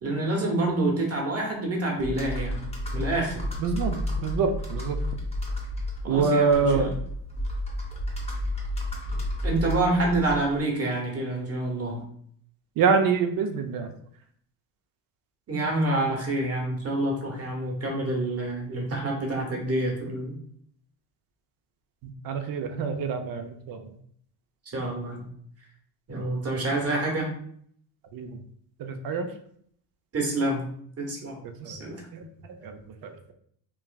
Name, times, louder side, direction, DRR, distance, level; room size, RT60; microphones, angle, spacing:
voice 1, 0.0-2.7 2.9-3.4 6.0-6.9 9.4-12.0 15.5-20.3 24.7-25.3 26.1-27.3 30.1-30.7 31.0-32.0, right 2 dB, 30° right, -1 dB, 1.0 m, -27 dB
Computer keyboard, 2.0-10.6, left 1 dB, 15° left, 0.7 m, -31 dB
voice 2, 3.6-5.0 6.1-6.9 12.8-13.9 18.9-19.0 22.2-23.8 28.1-28.4 28.8-29.3 31.6-31.7 32.1-32.2 32.6-32.8 33.0-33.3, right 5 dB, 50° right, 6 dB, 0.5 m, -25 dB
3.1 x 2.4 x 2.2 m, 0.64 s
supercardioid pair, 85°, 46 cm